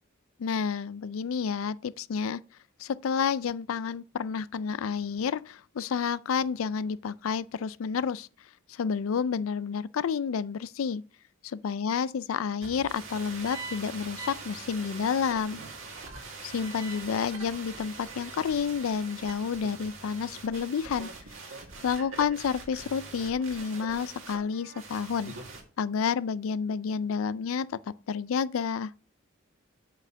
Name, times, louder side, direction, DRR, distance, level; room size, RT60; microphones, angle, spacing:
voice 1, 0.4-2.4 2.8-8.3 8.7-11.0 11.4-15.6 16.4-21.1 21.8-25.3 25.8-27.8 28.1-28.9, left 6 dB, 85° left, 0.4 m, -30 dB
sound 1, 12.6-25.6, right 4 dB, 75° right, 2.0 m, -43 dB
7.9 x 4.2 x 6.2 m
head